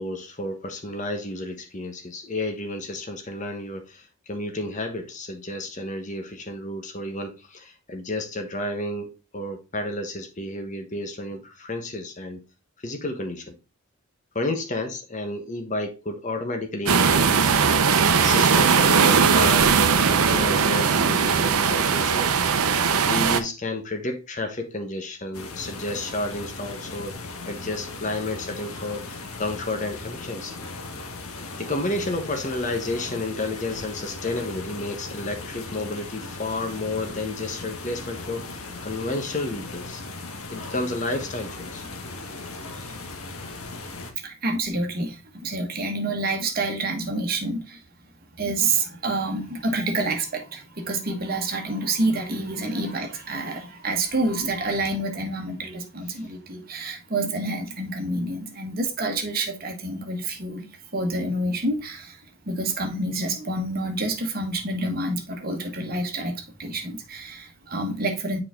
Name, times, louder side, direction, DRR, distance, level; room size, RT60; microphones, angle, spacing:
voice 1, 0.0-12.4 12.8-13.6 14.3-17.5 18.2-22.3 23.1-27.1 27.5-30.6 31.6-40.0 40.5-41.9 56.1-56.2, left 2 dB, 35° left, 1.1 m, -31 dB
sound 1, 16.9-23.4, right 6 dB, 90° right, 0.7 m, -19 dB
sound 2, 25.3-44.1, left 3 dB, 80° left, 1.2 m, -37 dB
voice 2, 44.2-47.8 48.4-62.2 62.4-68.4, right 2 dB, 45° right, 1.4 m, -28 dB
6.9 x 4.9 x 3.7 m
head